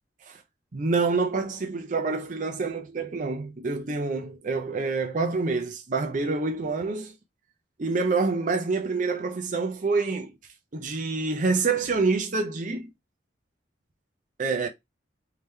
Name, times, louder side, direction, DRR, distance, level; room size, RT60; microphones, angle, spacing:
voice 1, 0.7-7.2 7.8-10.3 10.7-12.9 14.4-14.7, right 4 dB, 45° right, 0.6 m, -27 dB
3.5 x 2.8 x 3.2 m
head